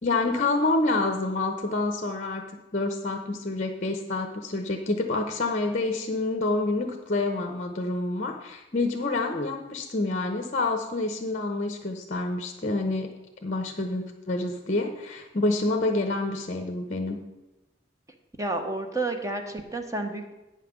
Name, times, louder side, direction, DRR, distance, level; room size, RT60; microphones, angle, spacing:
voice 1, 0.0-2.4 2.7-13.1 13.4-17.2, left 2 dB, 40° left, 4 dB, 0.9 m, -27 dB
voice 2, 18.4-20.3, right 2 dB, 15° right, 5 dB, 1.0 m, -30 dB
9.0 x 5.8 x 7.1 m, 1.0 s
head